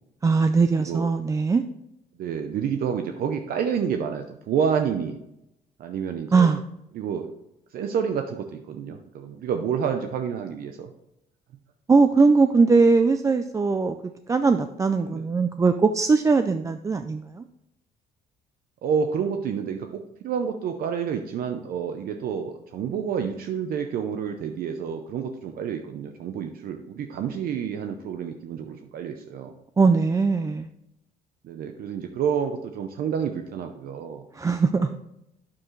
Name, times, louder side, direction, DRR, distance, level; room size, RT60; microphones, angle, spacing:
voice 1, 0.2-1.6 6.3-6.6 11.9-14.0 14.3-17.4 29.8-30.7 34.4-35.0, right 4 dB, 20° right, 9 dB, 0.4 m, -20 dB
voice 2, 2.2-5.2 5.8-6.5 6.9-7.3 7.7-10.9 15.0-15.3 18.8-29.5 31.4-34.2, right 7 dB, 60° right, 6 dB, 0.6 m, -29 dB
8.7 x 7.1 x 3.1 m, 0.85 s
cardioid pair, 110°, 17 cm